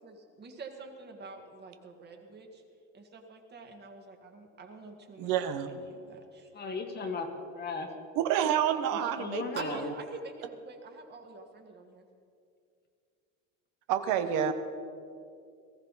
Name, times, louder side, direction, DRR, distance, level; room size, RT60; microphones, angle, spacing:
voice 1, 0.0-2.6 2.9-6.5 9.6-12.1, right 3 dB, 30° right, 3 dB, 1.8 m, -46 dB
voice 2, 5.2-5.7 8.2-9.4 13.9-14.5, right 10 dB, 70° right, 8 dB, 1.1 m, -28 dB
voice 3, 6.5-7.9 8.9-9.8 14.3-14.5, left 5 dB, 30° left, 5 dB, 1.4 m, -36 dB
19.0 x 14.5 x 4.1 m, 2.4 s
cardioid pair, 150°, 34 cm